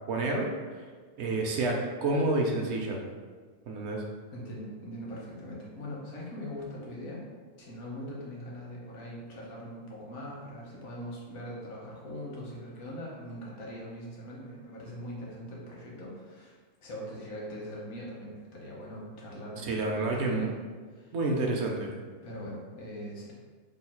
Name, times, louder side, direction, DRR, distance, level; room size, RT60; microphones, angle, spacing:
voice 1, 0.1-0.5 1.2-3.0 3.7-4.0 19.6-20.5 21.1-21.9, right 2 dB, 65° right, 0 dB, 0.7 m, -29 dB
voice 2, 4.3-7.2 7.6-20.5 20.9-21.1 22.2-23.3, equal, 85° left, -4 dB, 1.3 m, -41 dB
3.1 x 2.3 x 4.3 m, 1.5 s
omnidirectional pair, 1.5 m